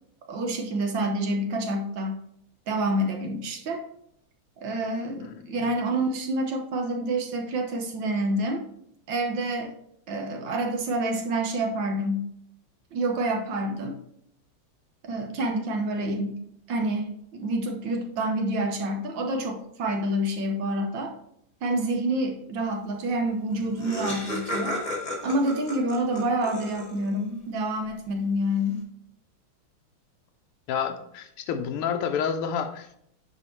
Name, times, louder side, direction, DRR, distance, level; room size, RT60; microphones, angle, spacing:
voice 1, 0.3-2.2 2.7-3.8 4.6-8.6 9.1-9.7 10.1-12.3 12.9-14.0 15.0-16.4 16.7-21.2 21.6-24.8 25.2-28.8, right 1 dB, 65° right, 3 dB, 1.5 m, -28 dB
voice 2, 5.2-5.6 30.7-33.0, left 7 dB, 80° left, 7 dB, 1.7 m, -29 dB
Laughter, 23.2-23.3 23.5-27.2, left 1 dB, 25° left, 1.3 m, -34 dB
9.9 x 4.7 x 3.1 m, 0.71 s
omnidirectional pair, 2.4 m